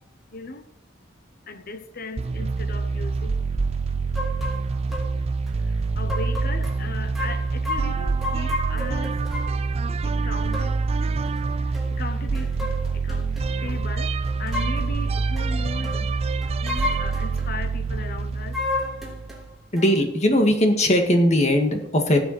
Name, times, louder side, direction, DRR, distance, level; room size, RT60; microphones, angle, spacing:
voice 1, 0.3-0.7 1.5-3.4 5.7-9.3 9.6-9.7 10.0-10.8 11.5-16.1 16.6-18.6, left 3 dB, 55° left, 1.0 m, -37 dB
sound 1, 2.2-19.5, right 4 dB, 35° right, 0.3 m, -26 dB
sound 2, 4.2-4.6 4.9-5.1 5.5-5.6 6.1-6.8 7.2-9.6 10.5-10.7 11.3-11.4 11.7-11.9 12.3-13.5 14.2-14.9 15.4-15.5 15.8-16.0 16.4-17.5 18.5-19.4 19.8-19.9, left 2 dB, ahead, 3.0 m, -32 dB
voice 2, 19.7-22.2, left 1 dB, 40° left, 1.8 m, -19 dB
17.5 x 7.0 x 4.3 m
head